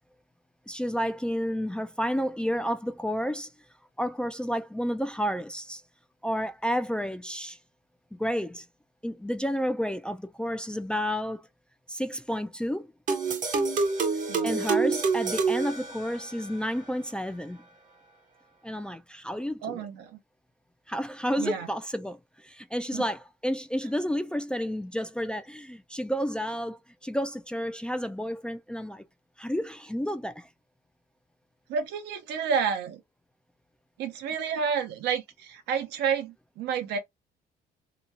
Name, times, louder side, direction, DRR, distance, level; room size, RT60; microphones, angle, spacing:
voice 1, 0.7-3.5 4.0-5.8 6.2-7.6 8.1-8.7 9.0-11.5 11.9-12.9 14.4-17.6 18.6-19.9 20.9-29.0 29.4-30.5, equal, 5° left, 0.3 m, -31 dB
sound 1, 13.1-16.5, right 4 dB, 50° right, 0.8 m, -27 dB
voice 2, 19.6-20.2 21.4-21.7 22.9-23.0 31.7-33.0 34.0-37.0, right 6 dB, 80° right, 0.8 m, -30 dB
2.9 x 2.3 x 2.5 m
cardioid pair, 110°, 17 cm